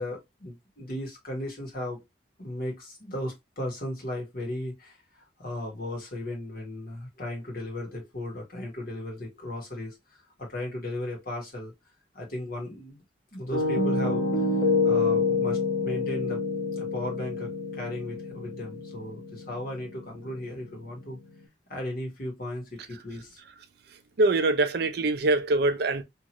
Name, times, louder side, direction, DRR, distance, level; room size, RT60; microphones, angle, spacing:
voice 1, 0.0-2.0 2.4-11.7 12.1-13.0 13.3-16.4 16.7-21.2 21.7-23.4, left 1 dB, 50° left, 1.3 m, -36 dB
Piano, 13.5-21.4, left 3 dB, 80° left, 1.4 m, -28 dB
voice 2, 24.2-26.0, right 2 dB, 55° right, 0.4 m, -23 dB
2.8 x 2.6 x 2.8 m
head